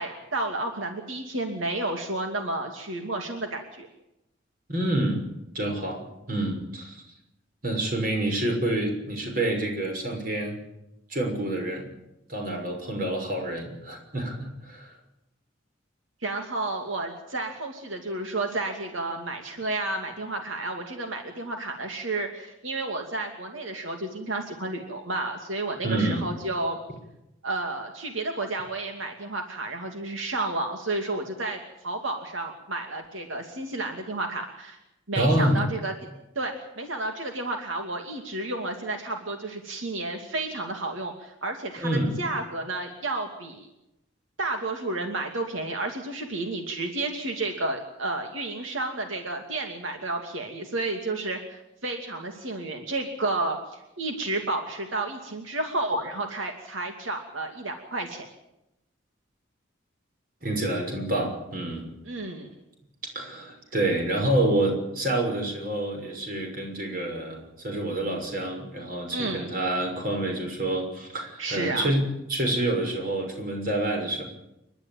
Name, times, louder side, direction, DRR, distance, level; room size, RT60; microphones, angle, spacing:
voice 1, 0.0-3.9 16.2-26.8 27.4-34.8 35.1-35.9 36.4-43.7 44.4-58.3 62.1-62.5 69.1-69.5 71.4-71.9, right 2 dB, 85° right, 3 dB, 2.6 m, -31 dB
voice 2, 4.7-5.2 5.5-7.0 7.6-10.6 11.1-11.9 12.3-15.0 25.8-26.3 35.2-35.6 41.8-42.1 60.4-61.9 63.1-72.0 72.3-74.2, right 1 dB, 45° right, 2 dB, 6.2 m, -27 dB
29.5 x 12.0 x 8.9 m, 0.88 s
head